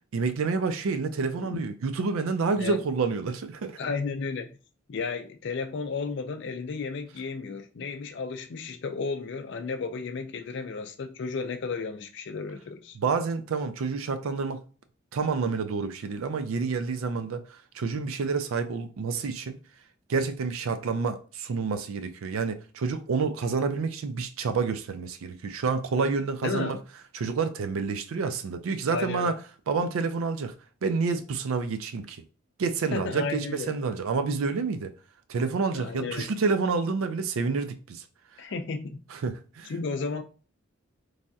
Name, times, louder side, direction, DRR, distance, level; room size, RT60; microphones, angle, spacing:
voice 1, 0.1-3.8 13.0-14.6 15.1-17.4 17.7-19.6 20.1-26.8 27.1-29.3 29.7-30.5 30.8-32.2 32.6-34.9 35.3-38.0 39.1-39.7, right 4 dB, 80° right, 0.4 m, -28 dB
voice 2, 3.8-4.5 4.9-13.0 26.4-26.8 28.9-29.3 32.9-33.7 35.7-36.3 38.4-39.0 39.7-40.2, left 4 dB, 55° left, 0.4 m, -33 dB
3.2 x 2.6 x 2.3 m
head